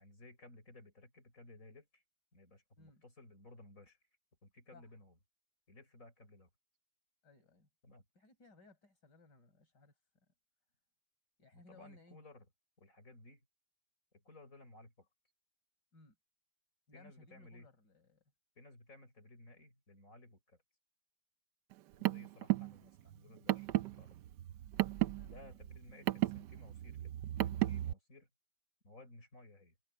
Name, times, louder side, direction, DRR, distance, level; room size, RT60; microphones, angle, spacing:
voice 1, 0.0-2.0 2.3-4.0 4.4-5.2 5.7-6.5 7.8-8.0 11.5-12.5 12.8-13.4 14.1-15.1 16.9-17.7 18.6-20.6 22.0-24.1 25.2-28.3 28.8-29.8, left 2 dB, 45° left, 6.5 m, -58 dB
voice 2, 7.2-7.7 8.2-9.9 11.4-12.2 15.9-16.2 16.9-18.2 22.0-22.2 24.7-25.6, left 3 dB, 75° left, 5.8 m, -62 dB
Car, 21.7-27.9, right 16 dB, 75° right, 1.3 m, -35 dB
omnidirectional pair, 1.9 m